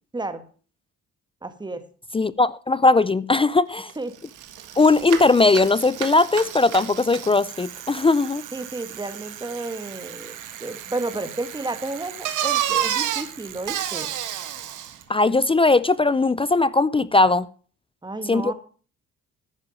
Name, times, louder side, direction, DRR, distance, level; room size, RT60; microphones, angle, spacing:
voice 1, 1.4-1.9 3.9-4.1 8.5-14.1 18.0-18.5, right 2 dB, 15° right, 1.6 m, -32 dB
voice 2, 2.1-3.9 4.8-8.4 15.1-17.5 18.3-18.5, left 3 dB, 20° left, 0.5 m, -19 dB
Bicycle, 3.9-4.0 4.2-15.0, right 11 dB, 80° right, 1.6 m, -31 dB
11.0 x 9.9 x 5.2 m
cardioid pair, 90°, 30 cm